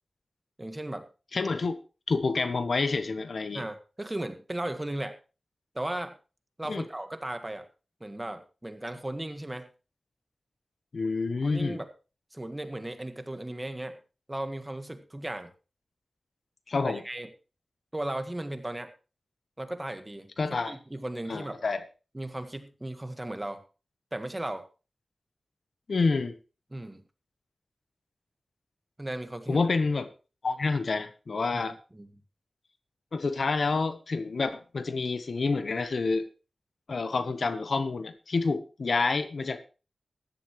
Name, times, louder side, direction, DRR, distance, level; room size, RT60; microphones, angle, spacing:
voice 1, 0.6-1.1 3.5-5.2 5.7-6.2 6.6-7.7 8.0-9.7 11.4-11.9 12.3-14.0 14.3-15.5 16.8-17.3 17.9-18.9 19.6-20.3 20.6-21.6 22.1-23.6 24.1-24.7 26.7-27.0 29.0-29.7 31.5-32.1, right 1 dB, 20° right, 8 dB, 1.6 m, -36 dB
voice 2, 1.3-1.8 2.1-3.6 6.7-6.8 10.9-11.8 16.7-17.0 20.4-20.7 21.3-21.8 25.9-26.3 29.5-30.1 30.4-31.8 33.1-36.2 36.9-39.6, left 4 dB, 70° left, 11 dB, 1.1 m, -28 dB
14.5 x 11.5 x 3.2 m, 0.33 s
wide cardioid pair, 65°, 0 cm